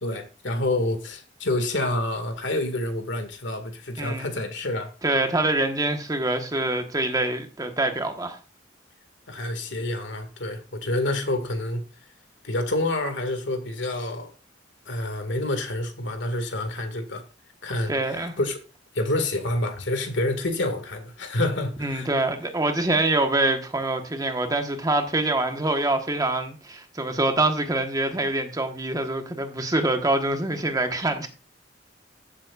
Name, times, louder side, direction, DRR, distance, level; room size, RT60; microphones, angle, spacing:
voice 1, 0.0-4.9 9.3-11.8 12.4-14.3 14.9-17.2 17.6-18.6 18.9-22.1, left 1 dB, 90° left, 2.0 m, -28 dB
voice 2, 5.0-8.4 17.9-18.3 21.8-31.3, right 2 dB, 20° right, 1.3 m, -25 dB
14.5 x 7.5 x 2.4 m
head